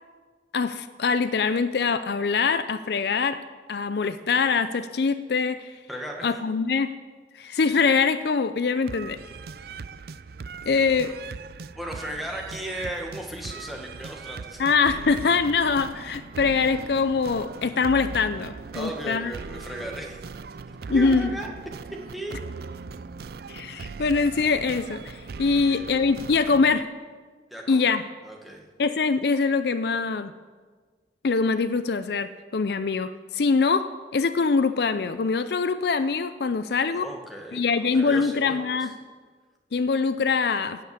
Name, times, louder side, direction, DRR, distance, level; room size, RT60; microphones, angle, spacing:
voice 1, 0.5-3.4 3.7-5.7 6.2-6.9 7.3-9.2 10.7-11.1 14.6-19.3 20.9-21.3 23.5-26.9 27.7-28.0 28.8-30.3 31.2-33.9 34.1-37.1 37.5-38.9 39.7-40.8, left 4 dB, 60° left, 12 dB, 0.4 m, -23 dB
voice 2, 5.9-6.3 10.7-11.1 11.7-14.6 18.7-20.2 20.8-21.5 22.1-22.4 25.5-25.9 27.5-28.0 28.2-28.7 36.9-38.9, right 1 dB, ahead, -1 dB, 1.5 m, -36 dB
sound 1, 8.9-26.8, right 4 dB, 55° right, 0.4 m, -39 dB
16.0 x 5.7 x 8.4 m, 1.5 s
head